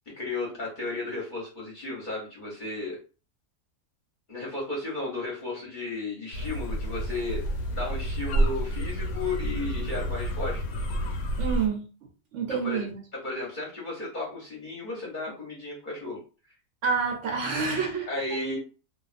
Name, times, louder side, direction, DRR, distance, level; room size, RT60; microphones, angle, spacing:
voice 1, 0.2-3.0 4.3-7.4 7.7-10.6 12.5-12.9 13.1-16.2 18.1-18.6, left 2 dB, 45° left, 0.7 m, -34 dB
sound 1, 6.3-11.7, right 1 dB, 90° left, 1.0 m, -29 dB
voice 2, 11.4-11.9 12.3-13.0 16.8-18.6, right 5 dB, 70° right, 0.8 m, -28 dB
2.3 x 2.3 x 2.4 m
omnidirectional pair, 1.5 m